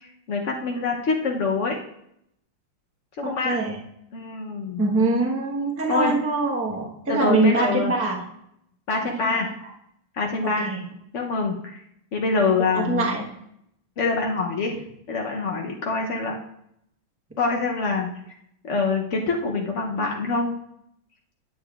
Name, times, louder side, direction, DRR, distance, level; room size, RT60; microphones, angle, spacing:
voice 1, 0.0-1.8 3.2-3.6 4.1-4.8 5.9-6.2 7.1-7.9 8.9-9.5 10.1-10.7 11.1-11.8 12.1-13.1 14.0-14.8 15.1-16.3 17.4-18.1 18.6-20.5, left 4 dB, 90° left, 0 dB, 0.6 m, -25 dB
voice 2, 3.2-3.8 4.8-8.2 9.0-9.5 10.4-10.8 12.7-13.2, right 3 dB, 15° right, -1 dB, 0.4 m, -24 dB
10.0 x 8.5 x 2.4 m, 0.76 s
omnidirectional pair, 2.4 m